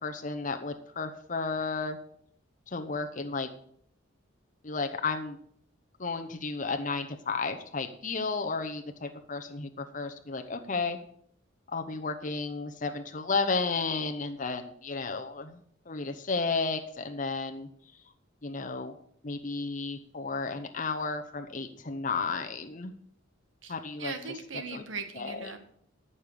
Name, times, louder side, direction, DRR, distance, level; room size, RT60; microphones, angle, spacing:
voice 1, 0.0-2.0 2.7-3.5 4.6-5.4 6.0-11.0 11.7-17.7 18.4-18.9 19.2-22.9 23.7-24.1 24.7-24.8 25.2-25.5, left 4 dB, 40° left, 6 dB, 0.8 m, -33 dB
voice 2, 24.0-25.6, right 4 dB, 70° right, 7 dB, 1.6 m, -39 dB
14.0 x 5.6 x 6.8 m, 0.65 s
head